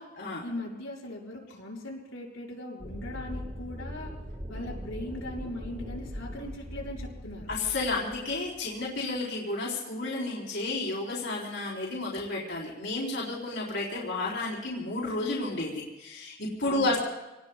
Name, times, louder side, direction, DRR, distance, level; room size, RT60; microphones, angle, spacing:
voice 1, 0.4-4.1 4.5-7.5 16.6-17.0, left 1 dB, 90° left, -3 dB, 5.5 m, -39 dB
sound 1, 2.8-9.1, equal, 30° right, 6.7 m, -40 dB
voice 2, 7.5-17.0, left 2 dB, 65° left, -4 dB, 4.1 m, -31 dB
29.0 x 19.0 x 2.4 m, 1.0 s
head